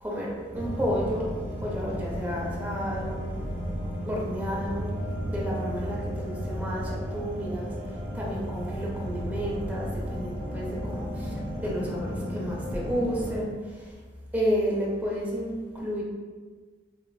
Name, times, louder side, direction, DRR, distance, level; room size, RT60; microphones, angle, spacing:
voice 1, 0.0-1.3 1.6-3.4 4.1-4.9 5.2-7.7 8.1-13.9 14.3-16.0, equal, 10° right, -4 dB, 0.5 m, -31 dB
sound 1, 0.5-13.4, equal, 65° right, 0.6 m, -33 dB
3.2 x 2.4 x 2.2 m, 1.5 s
head